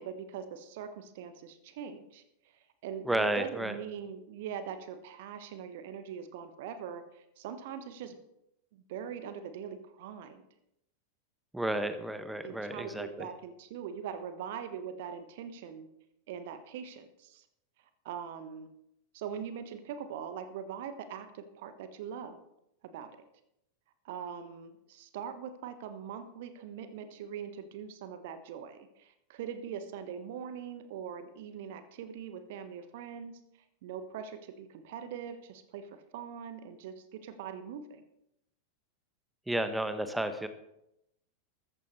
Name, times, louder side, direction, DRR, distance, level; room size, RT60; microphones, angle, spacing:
voice 1, 0.0-2.2 2.5-8.2 8.7-10.4 12.4-15.9 16.3-17.4 18.0-18.7 19.1-22.4 22.8-23.2 24.0-33.4 33.8-38.0, right 8 dB, 50° right, 10 dB, 1.3 m, -42 dB
voice 2, 3.0-3.7 11.5-13.3 39.5-40.5, right 1 dB, 5° right, 10 dB, 1.1 m, -32 dB
14.0 x 14.0 x 3.3 m, 0.81 s
figure-of-eight pair, 90°, 0 cm